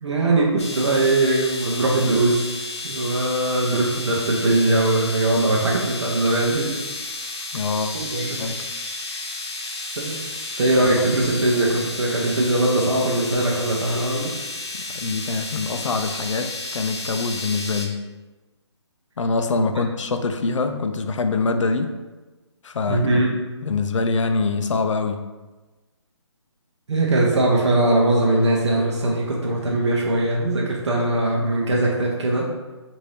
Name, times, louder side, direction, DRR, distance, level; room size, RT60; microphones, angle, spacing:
voice 1, 0.0-2.5 2.8-6.7 7.9-8.4 10.0-10.2 10.6-14.3 19.6-19.7 22.9-23.4 26.9-32.5, right 2 dB, 65° right, -3 dB, 0.7 m, -21 dB
sound 1, 0.6-17.9, left 2 dB, 60° left, 0.8 m, -32 dB
voice 2, 7.5-8.0 8.4-8.8 10.8-10.9 14.9-18.0 19.2-21.9 22.6-23.2 23.6-25.2, left 4 dB, 85° left, 8 dB, 0.4 m, -24 dB
2.8 x 2.6 x 3.2 m, 1.2 s
hypercardioid pair, 170°, 15 cm